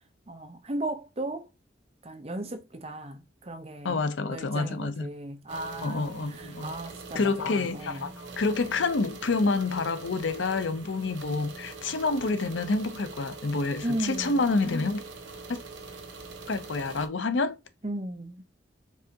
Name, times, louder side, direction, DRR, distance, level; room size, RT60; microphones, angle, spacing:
voice 1, 0.3-1.5 2.0-4.0 4.3-8.1 13.8-14.5 17.8-18.5, right 1 dB, 35° right, 0.8 m, -36 dB
voice 2, 3.8-5.1 5.8-6.7 7.1-15.0 15.5-15.6 16.5-17.6, left 3 dB, 90° left, 0.7 m, -28 dB
sound 1, 5.5-17.1, right 3 dB, 85° right, 1.0 m, -44 dB
4.8 x 3.6 x 2.8 m
head